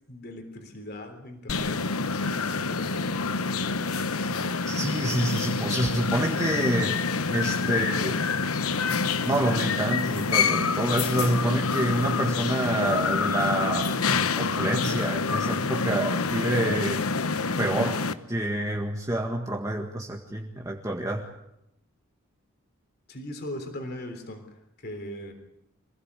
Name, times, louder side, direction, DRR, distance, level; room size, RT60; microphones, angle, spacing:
voice 1, 0.1-1.8 2.5-3.3 7.6-8.8 23.1-25.3, left 1 dB, 45° left, 5 dB, 3.6 m, -40 dB
sound 1, 1.5-18.1, left 4 dB, 85° left, 1.1 m, -27 dB
voice 2, 4.6-7.0 7.3-8.1 9.2-13.9 14.4-17.1 17.6-18.0 18.3-21.2, right 1 dB, 15° right, 1 dB, 1.8 m, -27 dB
26.5 x 17.0 x 8.4 m, 0.84 s
head